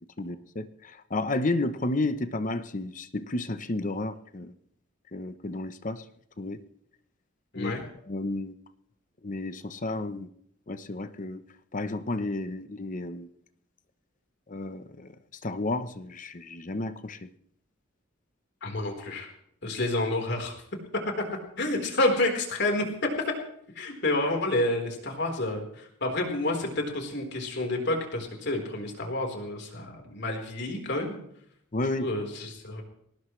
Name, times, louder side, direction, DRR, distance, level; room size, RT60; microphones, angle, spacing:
voice 1, 0.2-4.5 5.1-6.0 6.4-6.6 7.5-7.7 8.1-8.5 9.2-10.3 10.7-11.4 11.7-13.3 14.5-15.1 15.4-17.3 31.7-32.1, left 2 dB, 40° left, 12 dB, 0.9 m, -32 dB
voice 2, 18.6-19.3 19.6-20.6 21.2-21.3 21.6-22.9 23.7-31.2 32.0-32.8, left 2 dB, 60° left, 2 dB, 4.2 m, -29 dB
24.0 x 18.5 x 3.3 m, 0.68 s
head